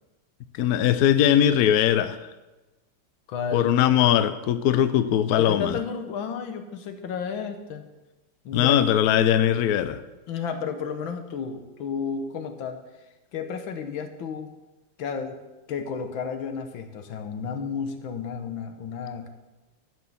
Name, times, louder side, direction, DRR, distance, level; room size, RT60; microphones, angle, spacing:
voice 1, 0.5-2.3 3.5-5.7 8.5-10.0, left 10 dB, 80° left, 11 dB, 0.8 m, -20 dB
voice 2, 3.3-3.7 5.3-7.9 8.4-8.8 10.3-12.8 13.3-14.5 15.0-15.4 15.7-19.3, left 6 dB, 65° left, 7 dB, 1.7 m, -32 dB
12.5 x 6.1 x 7.0 m, 1.1 s
omnidirectional pair, 2.4 m